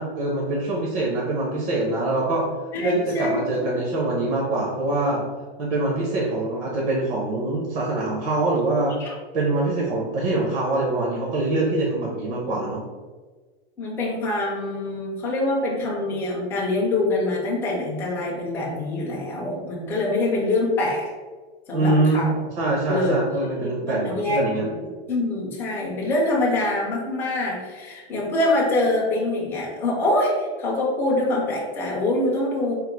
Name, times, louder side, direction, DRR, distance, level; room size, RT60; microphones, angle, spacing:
voice 1, 0.0-2.4 2.8-5.2 5.6-9.0 9.3-12.8 21.7-22.2 22.5-24.7, right 2 dB, 55° right, -4 dB, 0.9 m, -24 dB
voice 2, 2.7-3.5 9.0-9.1 13.8-21.1 21.7-22.3 22.9-23.2 23.6-32.7, left 2 dB, 5° left, -4 dB, 0.4 m, -25 dB
3.7 x 2.1 x 4.4 m, 1.4 s
supercardioid pair, 165°, 31 cm